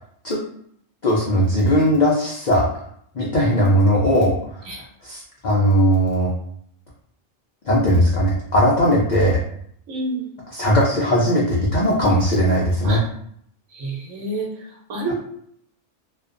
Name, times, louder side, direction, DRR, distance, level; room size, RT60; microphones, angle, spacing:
voice 1, 1.0-2.7 3.1-4.3 5.0-6.3 7.7-9.4 10.5-13.0, equal, 80° left, -4 dB, 0.4 m, -18 dB
voice 2, 9.9-10.3 12.8-13.0 13.7-15.1, right 2 dB, 80° right, -1 dB, 1.1 m, -29 dB
2.4 x 2.2 x 2.4 m, 0.67 s
omnidirectional pair, 1.4 m